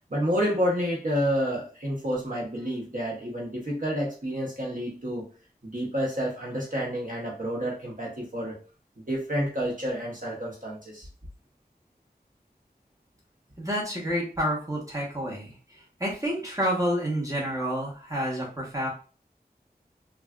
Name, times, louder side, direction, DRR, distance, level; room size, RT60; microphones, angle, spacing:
voice 1, 0.1-5.3 5.6-8.5 9.0-11.1, equal, 55° right, -3 dB, 1.0 m, -29 dB
voice 2, 13.6-18.9, equal, 20° right, -4 dB, 1.1 m, -29 dB
3.3 x 2.4 x 2.3 m, 0.37 s
wide cardioid pair, 40°, 17 cm